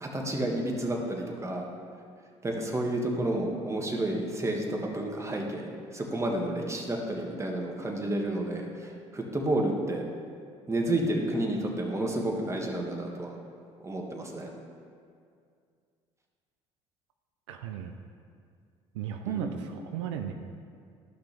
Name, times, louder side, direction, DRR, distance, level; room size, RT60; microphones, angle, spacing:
voice 1, 0.0-1.7 2.4-10.0 10.7-13.3 13.8-14.5 19.3-19.6, right 1 dB, 20° right, 0 dB, 1.5 m, -30 dB
voice 2, 17.5-17.9 18.9-20.3, right 9 dB, 80° right, 6 dB, 0.4 m, -35 dB
12.5 x 5.9 x 3.4 m, 2.2 s
hypercardioid pair, 60°, 15 cm